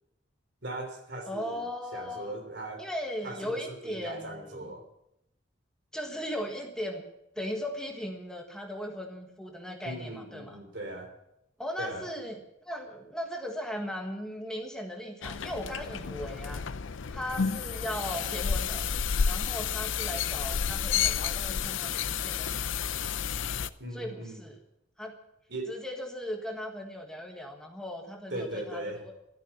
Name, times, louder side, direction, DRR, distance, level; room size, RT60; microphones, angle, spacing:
voice 1, 0.6-2.9 3.2-4.8 9.8-11.1 11.8-12.1 23.8-24.4 25.5-25.7 28.3-29.0, right 1 dB, 60° right, 5 dB, 3.3 m, -39 dB
voice 2, 1.3-2.3 2.8-4.7 5.9-7.0 7.3-10.6 11.6-12.4 12.6-16.6 17.1-18.9 19.2-23.1 23.9-24.6 25.0-25.2 25.7-29.1, equal, 5° left, 2 dB, 1.5 m, -38 dB
sound 1, 15.2-23.7, left 7 dB, 80° left, 0.6 m, -31 dB
13.0 x 13.0 x 7.1 m, 0.81 s
head